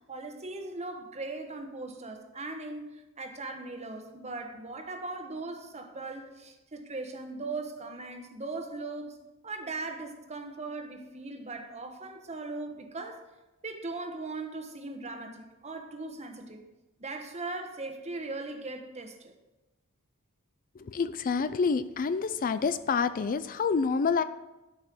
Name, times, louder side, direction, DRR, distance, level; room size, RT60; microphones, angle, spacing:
voice 1, 0.0-9.2 9.4-13.2 13.6-16.6 17.0-19.3, right 3 dB, 30° right, 1.2 m, -39 dB
voice 2, 20.8-24.2, left 5 dB, 40° left, 0.4 m, -28 dB
12.5 x 5.4 x 6.0 m
head